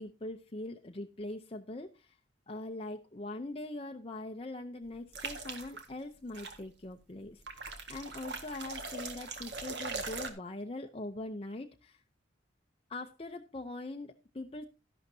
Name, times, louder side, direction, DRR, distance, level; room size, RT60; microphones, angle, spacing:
voice 1, 0.0-2.2 2.5-12.0 12.9-14.7, left 2 dB, 30° left, 4 dB, 0.7 m, -42 dB
sound 1, 5.1-5.9 6.3-6.6 7.5-10.3, right 4 dB, 65° right, 1.9 m, -40 dB
12.5 x 11.5 x 2.8 m, 0.28 s
head